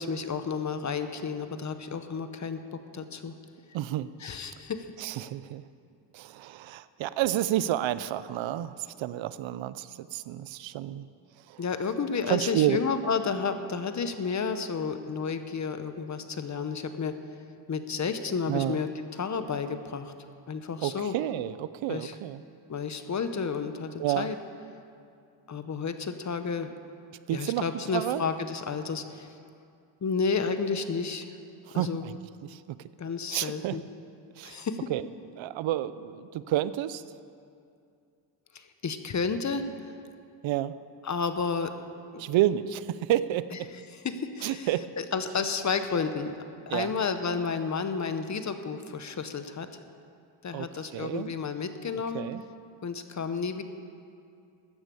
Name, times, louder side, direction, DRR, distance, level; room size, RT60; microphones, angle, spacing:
voice 1, 0.0-3.3 4.2-4.9 11.6-17.2 17.7-20.1 20.5-21.2 21.9-22.1 22.7-24.4 25.5-26.7 27.3-29.4 30.0-31.3 31.7-32.0 33.0-33.8 34.4-34.9 38.5-39.6 41.0-41.7 42.1-42.2 43.5-43.6 43.9-44.7 45.0-46.3 46.7-49.7 50.4-52.2 52.8-53.6, left 5 dB, 35° left, 9 dB, 1.0 m, -31 dB
voice 2, 3.7-4.1 5.0-5.6 6.1-11.1 11.5-11.6 12.3-12.8 18.5-18.8 20.8-22.4 24.0-24.3 27.3-27.6 27.9-28.2 31.7-32.8 33.3-33.8 34.4-34.6 34.9-35.0 35.4-37.0 40.4-40.8 42.2-43.7 44.4-44.9 46.7-46.9 50.5-50.7 50.9-51.3 52.1-52.4, right 13 dB, 80° right, 15 dB, 0.6 m, -30 dB
15.0 x 9.7 x 6.9 m, 2.4 s
cardioid pair, 100°, 46 cm